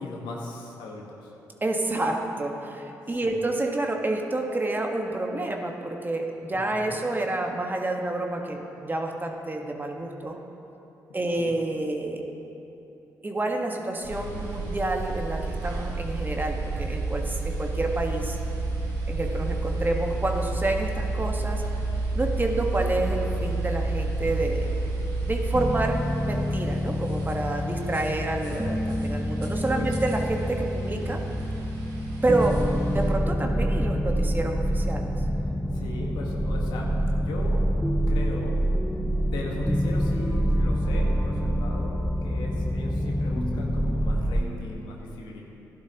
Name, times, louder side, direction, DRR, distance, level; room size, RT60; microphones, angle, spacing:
voice 1, 0.0-1.3 3.1-3.4 6.6-7.0 11.4-11.6 22.6-22.7 28.2-28.7 29.8-30.0 31.3-31.5 35.4-37.7 38.1-38.6 39.2-45.4, left 2 dB, 75° left, -1 dB, 1.7 m, -39 dB
voice 2, 1.6-10.4 11.1-12.2 13.2-18.4 19.1-21.6 22.1-24.7 25.2-31.2 32.2-35.0, right 2 dB, 25° right, 2 dB, 1.6 m, -28 dB
sound 1, 14.0-33.1, right 2 dB, 80° right, 2.0 m, -31 dB
sound 2, 25.5-44.4, equal, ahead, 0.7 m, -27 dB
15.5 x 11.5 x 3.0 m, 2.9 s
hypercardioid pair, 45°, 8 cm